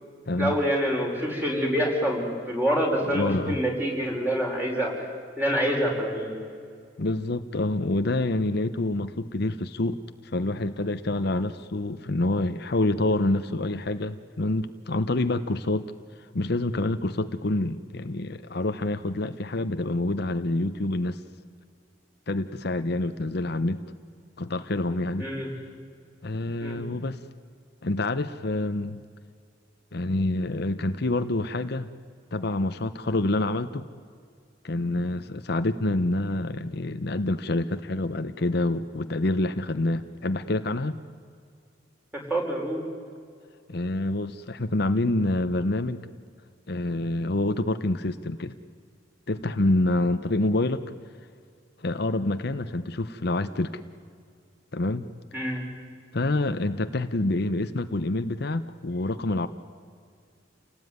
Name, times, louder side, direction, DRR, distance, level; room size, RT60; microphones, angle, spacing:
voice 1, 0.4-5.1 5.4-6.3 25.2-25.5 26.6-26.8 42.1-42.9 55.3-55.6, equal, 10° right, 0 dB, 5.2 m, -26 dB
voice 2, 3.1-3.6 7.0-15.9 16.3-21.2 22.3-23.8 24.4-25.3 26.2-27.2 27.8-29.0 29.9-31.9 32.3-33.8 34.6-41.0 43.7-46.0 46.7-48.5 49.3-50.8 51.8-53.8 54.7-55.1 56.1-59.5, left 2 dB, 60° left, 10 dB, 0.9 m, -27 dB
28.5 x 18.0 x 9.5 m, 2.2 s
head